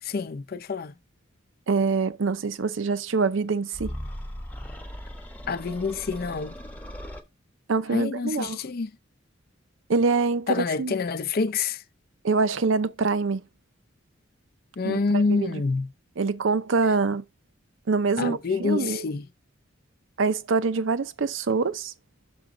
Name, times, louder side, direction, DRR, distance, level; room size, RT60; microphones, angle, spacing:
voice 1, 0.0-1.0 5.5-6.6 7.9-9.0 10.5-11.8 14.8-15.9 18.2-19.3, left 4 dB, 50° left, 0.5 m, -27 dB
voice 2, 1.7-3.9 7.7-8.6 9.9-10.5 10.8-10.9 12.2-13.4 14.8-15.5 16.2-17.2 17.9-19.0 20.2-21.9, right 4 dB, 70° right, 0.6 m, -25 dB
sound 1, 3.7-7.2, equal, 5° left, 0.8 m, -38 dB
6.2 x 6.0 x 3.8 m
head